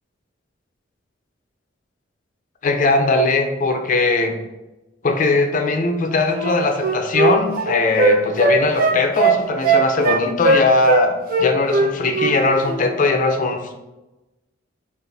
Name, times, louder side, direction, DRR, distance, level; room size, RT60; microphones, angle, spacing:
voice 1, 2.6-4.4 5.0-13.7, left 3 dB, 45° left, 5 dB, 0.5 m, -19 dB
Wind instrument woodwind instrument, 6.3-11.0 11.3-12.4 12.6-12.8, right 3 dB, 50° right, 0.5 m, -18 dB
3.9 x 2.5 x 3.4 m, 1.0 s
head